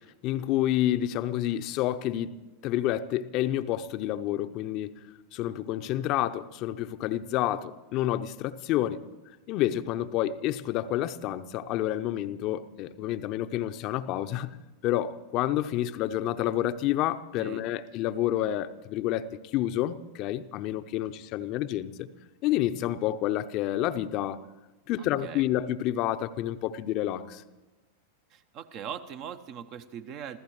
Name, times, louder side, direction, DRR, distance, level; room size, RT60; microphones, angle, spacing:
voice 1, 0.2-2.4 2.6-5.0 5.3-9.0 9.5-14.5 14.8-22.1 22.4-24.4 24.9-27.4, left 13 dB, 40° left, 0.8 m, -29 dB
voice 2, 25.0-25.4 28.3-30.4, right 8 dB, 40° right, 0.9 m, -41 dB
26.5 x 15.5 x 3.1 m
figure-of-eight pair, 90°, 0 cm